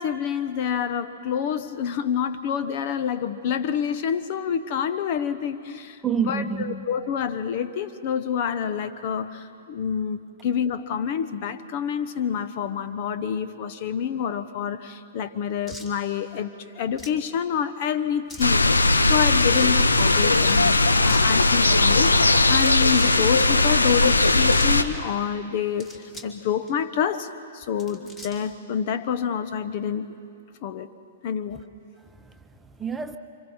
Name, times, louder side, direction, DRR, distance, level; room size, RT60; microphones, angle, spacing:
voice 1, 0.0-6.0 6.3-27.3 27.5-30.1 30.6-30.9 31.2-31.6, left 8 dB, 45° left, 11 dB, 1.0 m, -28 dB
voice 2, 6.0-6.9 32.0-33.2, right 7 dB, 15° right, 7 dB, 1.1 m, -29 dB
sound 1, 15.6-15.9 16.9-17.2 18.3-18.6 19.4-19.8 20.9-21.3 22.5-23.2 24.1-24.8 25.6-26.4 26.7-26.8 27.6-28.5, left 1 dB, 20° left, 3.1 m, -42 dB
sound 2, 18.4-24.8, left 2 dB, 85° left, 1.0 m, -19 dB
29.0 x 26.5 x 4.4 m, 2.5 s
figure-of-eight pair, 115°, 0 cm